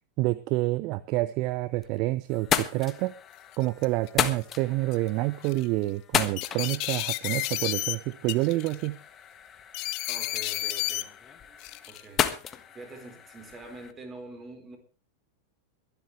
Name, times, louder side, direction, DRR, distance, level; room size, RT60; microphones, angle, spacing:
voice 1, 0.2-3.1 3.6-9.0, right 19 dB, 40° right, 16 dB, 0.7 m, -28 dB
sound 1, 1.4-2.0 2.3-13.9, left 9 dB, 25° left, 1.4 m, -34 dB
sound 2, 2.8-2.9 3.5-4.1 4.9-5.1 5.4-5.7 6.4-8.0 8.3-8.9 9.7-11.0 11.6-12.0, left 19 dB, 40° left, 0.9 m, -31 dB
voice 2, 10.1-12.2 12.7-14.8, right 3 dB, 20° right, 6 dB, 4.4 m, -46 dB
22.5 x 11.5 x 3.4 m, 0.34 s
figure-of-eight pair, 90°, 0 cm